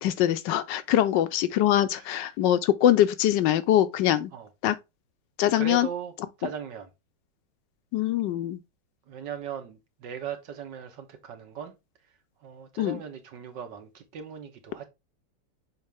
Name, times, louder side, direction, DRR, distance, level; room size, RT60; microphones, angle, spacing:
voice 1, 0.0-4.3 4.6-4.8 5.4-5.9 7.9-8.6 12.8-13.0, left 12 dB, 75° left, 1.2 m, -23 dB
voice 2, 5.6-6.1 6.4-6.9 9.1-11.8 12.4-14.9, right 7 dB, 70° right, 1.8 m, -38 dB
6.4 x 4.5 x 3.4 m
omnidirectional pair, 2.0 m